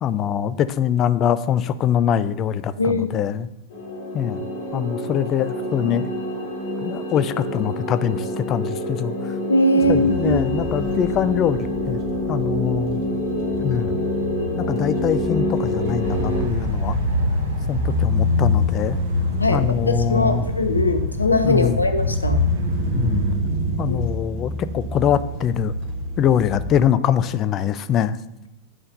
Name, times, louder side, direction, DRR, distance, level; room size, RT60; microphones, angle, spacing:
voice 1, 0.0-3.5 4.1-4.5 4.7-6.1 6.8-9.1 9.9-12.0 12.3-13.0 13.6-14.0 14.6-17.0 17.7-19.0 19.5-20.4 21.4-21.8 22.1-22.2 22.9-23.2 23.8-25.7 26.2-28.2, left 9 dB, 30° left, 15 dB, 0.4 m, -23 dB
voice 2, 2.8-3.1 9.5-10.5 19.4-22.4 23.9-24.0, left 1 dB, 80° left, 8 dB, 0.7 m, -21 dB
sound 1, 3.7-16.4, left 1 dB, 50° left, 2.4 m, -27 dB
sound 2, 9.8-26.8, left 1 dB, 45° right, 1.8 m, -28 dB
sound 3, 16.0-23.3, left 2 dB, 65° right, 1.7 m, -26 dB
8.6 x 4.5 x 6.7 m, 0.89 s
figure-of-eight pair, 90°, 0 cm